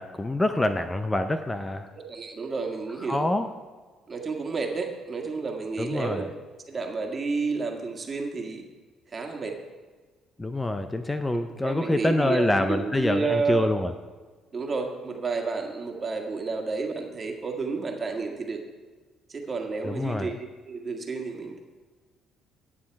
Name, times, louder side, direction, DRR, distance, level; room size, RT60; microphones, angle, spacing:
voice 1, 0.0-1.9 3.1-3.5 5.8-6.2 10.4-13.9 19.8-20.3, left 1 dB, 15° left, 8 dB, 0.7 m, -26 dB
voice 2, 2.0-3.3 4.1-6.3 6.7-8.6 9.1-9.6 11.3-13.7 14.5-18.6 19.3-21.6, right 4 dB, 40° right, 2 dB, 1.8 m, -31 dB
9.9 x 8.6 x 4.7 m, 1.4 s
supercardioid pair, 65°, 0 cm